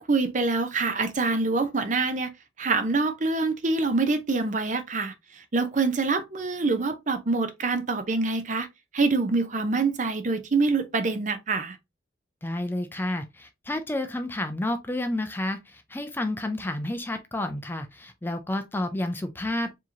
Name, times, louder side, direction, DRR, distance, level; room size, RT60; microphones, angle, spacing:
voice 1, 0.0-8.7 8.9-11.8, right 3 dB, 40° right, 0.6 m, -25 dB
voice 2, 12.4-19.8, left 1 dB, 10° left, 0.4 m, -30 dB
4.7 x 2.9 x 2.8 m
head